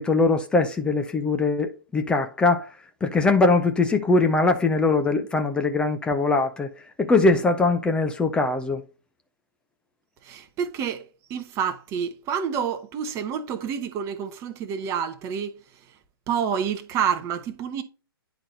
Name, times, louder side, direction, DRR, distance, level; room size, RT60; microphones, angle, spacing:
voice 1, 0.0-2.7 3.0-6.7 7.0-8.8, left 3 dB, 5° left, 0.5 m, -21 dB
voice 2, 10.2-11.0 11.3-15.5 16.3-17.8, right 7 dB, 20° right, 0.9 m, -28 dB
9.9 x 4.0 x 4.0 m
figure-of-eight pair, 125°, 13 cm